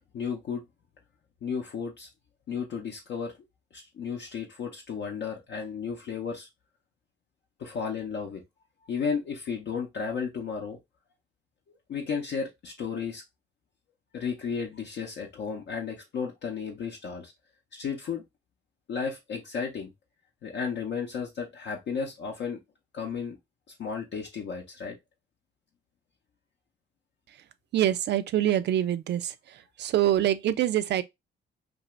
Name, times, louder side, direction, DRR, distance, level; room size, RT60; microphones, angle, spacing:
voice 1, 0.1-0.6 1.4-2.1 2.5-3.3 3.7-6.5 7.6-8.4 8.9-10.8 11.9-13.2 14.1-17.3 17.7-18.2 18.9-19.9 20.4-22.6 22.9-23.4 23.8-25.0, left 6 dB, 65° left, 0.7 m, -33 dB
voice 2, 27.7-29.3 29.8-31.0, right 12 dB, 60° right, 0.4 m, -25 dB
2.6 x 2.4 x 3.0 m
cardioid pair, 90°, 20 cm